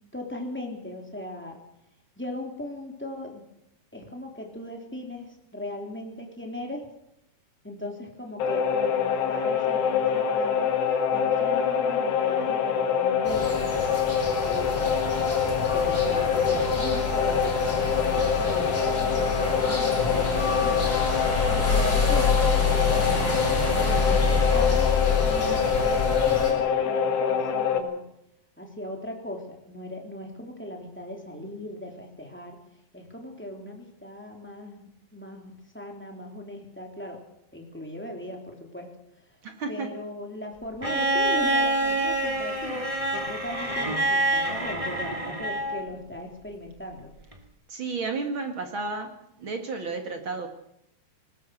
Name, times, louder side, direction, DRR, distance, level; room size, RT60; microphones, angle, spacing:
voice 1, 0.1-1.6 2.2-3.4 3.9-6.9 7.6-13.8 14.4-15.1 15.7-21.0 21.5-23.4 23.7-24.9 25.2-28.1 28.6-32.6 32.9-37.2 37.5-38.9 39.7-47.1, left 1 dB, 5° left, 1 dB, 2.5 m, -38 dB
sound 1, 8.4-27.8, left 7 dB, 70° left, 3.9 m, -25 dB
sound 2, 13.2-26.5, left 3 dB, 25° left, 7.0 m, -27 dB
voice 2, 39.4-40.0 47.7-49.1 49.4-50.5, right 4 dB, 45° right, 5 dB, 1.7 m, -32 dB
Bowed string instrument, 40.8-45.9 47.3-47.4, right 1 dB, 20° right, 0.9 m, -26 dB
21.5 x 19.5 x 6.5 m, 0.79 s
omnidirectional pair, 5.2 m